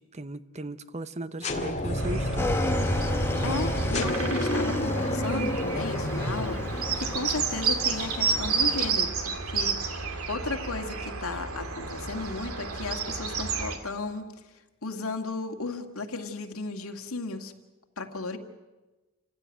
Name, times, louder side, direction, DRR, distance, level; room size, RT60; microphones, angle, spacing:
voice 1, 0.0-2.5, right 2 dB, 30° right, 14 dB, 0.7 m, -37 dB
sound 1, 1.4-7.4, left 1 dB, 30° left, 2.2 m, -30 dB
sound 2, 2.0-13.8, right 5 dB, 80° right, 2.4 m, -31 dB
Motorcycle / Engine, 2.4-8.9, left 1 dB, 10° left, 1.2 m, -34 dB
voice 2, 3.4-9.8 10.3-14.2 14.8-17.5 18.0-18.4, left 3 dB, 80° left, 5 dB, 2.1 m, -34 dB
27.5 x 16.0 x 9.2 m, 1.2 s
head